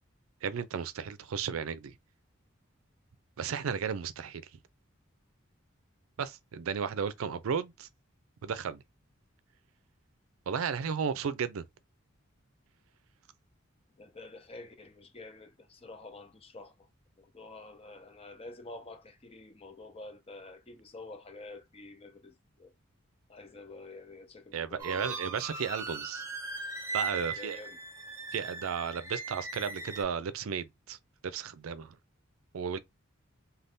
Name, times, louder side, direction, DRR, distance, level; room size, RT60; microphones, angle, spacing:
voice 1, 0.4-1.9 3.4-4.4 6.2-7.9 8.4-8.8 10.5-11.7 24.5-26.2 26.9-27.6 28.3-31.0 31.2-32.0 32.5-32.8, right 6 dB, 90° right, 0.4 m, -34 dB
voice 2, 14.0-16.9 17.2-22.7 23.3-25.2 27.1-27.8, left 2 dB, 30° left, 0.5 m, -48 dB
Sad Violin (Reverbed), 24.8-30.0, right 3 dB, 15° right, 0.6 m, -39 dB
2.6 x 2.3 x 3.4 m
head